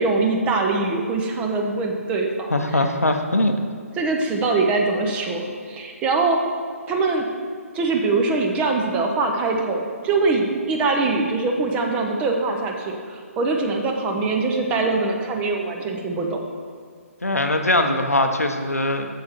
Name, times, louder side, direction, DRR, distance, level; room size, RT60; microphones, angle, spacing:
voice 1, 0.0-2.8 4.0-6.4 6.9-7.2 7.7-16.4, right 3 dB, 15° right, 2 dB, 0.6 m, -23 dB
voice 2, 2.5-3.5 17.2-19.1, left 1 dB, 80° left, 6 dB, 0.7 m, -21 dB
7.0 x 6.4 x 4.4 m, 2.1 s
figure-of-eight pair, 135°, 8 cm